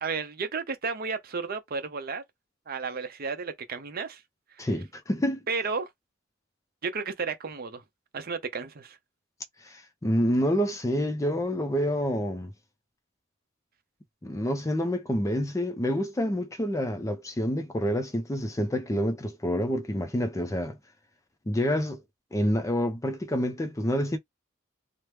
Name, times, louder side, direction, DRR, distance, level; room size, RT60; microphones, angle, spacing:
voice 1, 0.0-2.2 2.7-4.2 4.6-4.7 5.5-5.9 6.8-7.8 8.1-9.0, right 4 dB, 50° right, 0.6 m, -33 dB
voice 2, 4.6-5.4 9.6-12.5 14.2-20.8 21.5-22.0 22.3-24.2, equal, 15° left, 0.5 m, -28 dB
3.0 x 2.0 x 3.3 m
head